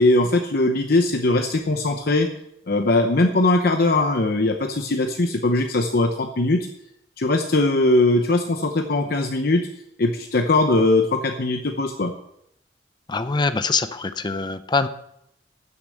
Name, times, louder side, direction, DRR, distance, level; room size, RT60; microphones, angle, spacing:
voice 1, 0.0-2.3 2.7-6.6 7.2-9.7 10.0-12.1, left 2 dB, 60° left, 4 dB, 0.8 m, -20 dB
voice 2, 13.1-14.9, left 4 dB, 25° left, 12 dB, 0.6 m, -23 dB
13.0 x 7.0 x 6.3 m, 0.77 s
head